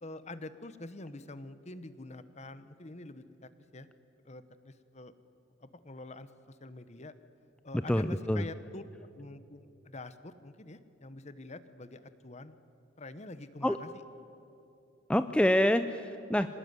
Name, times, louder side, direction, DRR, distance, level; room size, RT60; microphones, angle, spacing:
voice 1, 0.0-3.9 4.2-5.1 5.6-7.1 7.6-8.8 9.2-12.6 13.0-14.0, left 2 dB, 35° left, 12 dB, 1.1 m, -46 dB
voice 2, 7.9-8.5 13.6-13.8 15.1-16.5, left 1 dB, 5° left, 10 dB, 0.5 m, -26 dB
25.0 x 19.0 x 9.6 m, 2.7 s
head